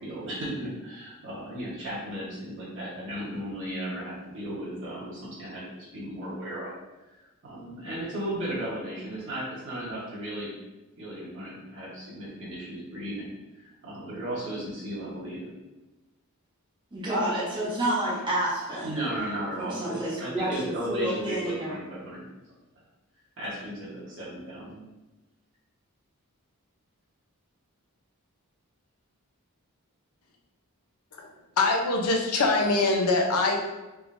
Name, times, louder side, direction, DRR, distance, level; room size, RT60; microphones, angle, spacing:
voice 1, 0.0-6.8 7.2-10.5 11.0-15.5 18.8-22.2 23.4-24.8, right 1 dB, 60° right, -9 dB, 1.2 m, -35 dB
voice 2, 16.9-18.9 19.6-21.8, right 1 dB, 20° right, -7 dB, 0.9 m, -29 dB
voice 3, 31.6-33.6, left 3 dB, 90° left, 1 dB, 0.7 m, -23 dB
3.7 x 3.2 x 2.6 m, 1.1 s
head